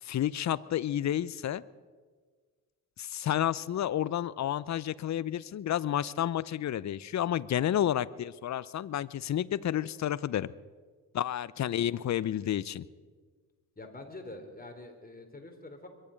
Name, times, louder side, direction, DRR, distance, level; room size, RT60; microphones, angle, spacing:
voice 1, 0.0-1.6 3.0-10.5 11.1-12.8, left 11 dB, 40° left, 20 dB, 0.6 m, -30 dB
voice 2, 13.8-15.9, left 2 dB, 20° left, 4 dB, 3.6 m, -45 dB
22.5 x 11.5 x 5.2 m, 1.5 s
hypercardioid pair, 45°, 43 cm